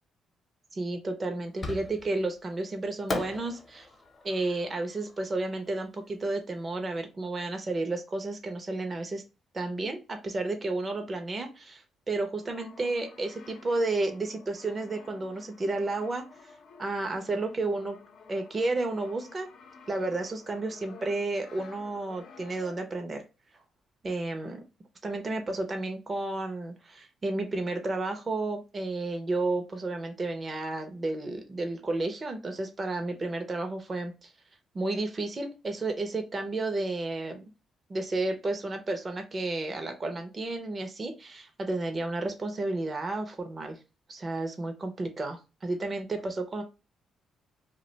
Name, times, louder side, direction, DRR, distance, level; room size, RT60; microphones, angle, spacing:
voice 1, 0.7-3.9 4.2-9.2 9.5-16.5 16.8-18.0 18.3-19.5 19.9-23.2 24.0-24.6 25.0-34.3 34.7-37.5 37.9-43.8 44.1-46.6, right 2 dB, 30° right, 5 dB, 0.6 m, -32 dB
Fireworks, 1.6-2.3 3.1-6.2, left 2 dB, 30° left, 0.7 m, -38 dB
Brass instrument, 12.3-23.1, left 5 dB, 70° left, 0.6 m, -52 dB
2.4 x 2.2 x 3.8 m, 0.30 s
cardioid pair, 90°, 0 cm